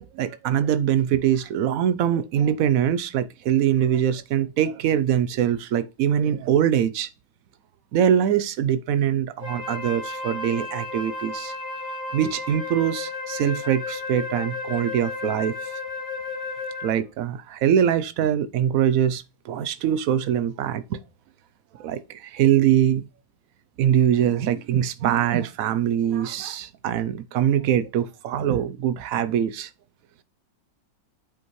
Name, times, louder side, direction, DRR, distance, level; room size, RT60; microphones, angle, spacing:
voice 1, 0.0-7.1 7.9-11.5 12.1-15.5 16.8-21.0 21.8-23.1 23.8-29.7, right 9 dB, 70° right, 0.8 m, -23 dB
Wind instrument woodwind instrument, 9.4-17.0, left 3 dB, 60° left, 5.3 m, -33 dB
8.7 x 5.0 x 3.1 m
omnidirectional pair, 2.0 m